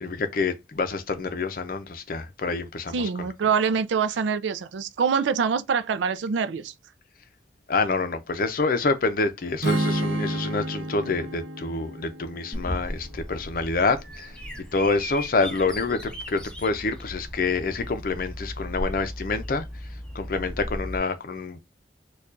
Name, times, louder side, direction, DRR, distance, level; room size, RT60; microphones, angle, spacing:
voice 1, 0.0-3.0 7.7-14.3 14.7-19.6 20.1-21.6, left 3 dB, 50° left, 0.5 m, -27 dB
voice 2, 2.9-6.7, right 6 dB, 85° right, 0.4 m, -25 dB
Strum, 9.6-13.8, right 1 dB, 65° right, 0.8 m, -30 dB
Bird vocalization bird call bird song, 12.5-21.0, equal, 5° left, 0.5 m, -36 dB
4.5 x 2.3 x 2.5 m
head